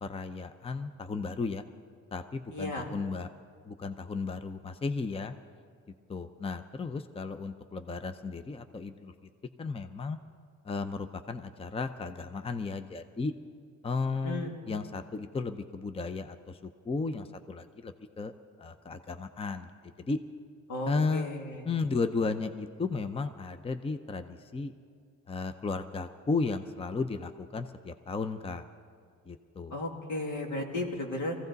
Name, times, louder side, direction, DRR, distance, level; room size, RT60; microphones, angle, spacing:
voice 1, 0.0-1.6 2.1-3.3 3.6-5.3 6.1-9.1 9.6-10.2 10.7-13.3 13.8-18.3 18.6-19.7 20.0-20.2 20.9-21.3 21.6-24.7 25.3-28.6 29.3-29.8, left 4 dB, 20° left, 9 dB, 0.6 m, -34 dB
voice 2, 2.5-2.9 14.1-14.6 20.7-21.7 29.7-31.4, left 1 dB, 80° left, 1 dB, 2.3 m, -35 dB
22.5 x 15.5 x 4.0 m, 2.2 s
cardioid pair, 90°, 30 cm